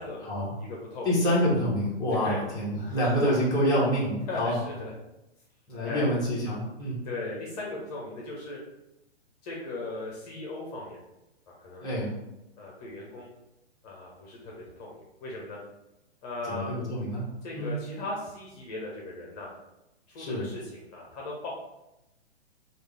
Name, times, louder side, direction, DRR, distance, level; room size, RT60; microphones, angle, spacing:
voice 1, 0.5-1.1 2.1-2.4 2.8-3.3 4.3-4.9 5.8-6.1 7.0-8.6 9.4-11.0 11.6-11.9 12.6-13.3 13.8-15.6 16.2-16.7 17.4-19.5 20.1-21.5, left 2 dB, 35° left, -3 dB, 0.9 m, -38 dB
voice 2, 1.0-4.6 5.7-7.0 11.8-12.1 16.4-17.2 17.5-17.7 20.2-20.4, equal, 10° left, -7 dB, 1.0 m, -27 dB
3.3 x 2.5 x 3.4 m, 0.93 s
figure-of-eight pair, 120°, 34 cm